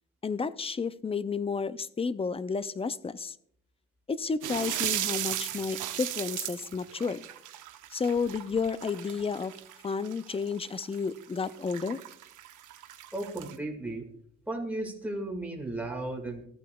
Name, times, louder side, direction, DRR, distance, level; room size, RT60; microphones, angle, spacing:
voice 1, 0.2-3.4 4.1-7.2 7.9-9.5 9.8-12.0, left 5 dB, 20° left, 15 dB, 0.4 m, -31 dB
sound 1, 4.4-13.6, right 12 dB, 80° right, 0.8 m, -37 dB
voice 2, 13.1-14.1 14.5-16.4, right 2 dB, 5° right, 1 dB, 1.8 m, -35 dB
14.0 x 8.2 x 2.3 m, 0.68 s
cardioid pair, 90°, 30 cm